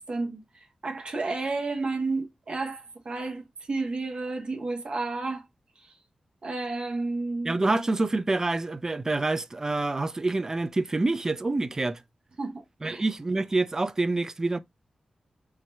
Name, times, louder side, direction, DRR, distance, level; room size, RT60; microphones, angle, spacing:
voice 1, 0.0-5.4 5.8-5.9 6.4-7.5 12.4-13.0, right 3 dB, 50° right, 0.7 m, -32 dB
voice 2, 7.4-12.0 12.8-14.6, right 2 dB, 25° right, 0.3 m, -27 dB
4.7 x 2.2 x 2.9 m
wide cardioid pair, 120°, 2 cm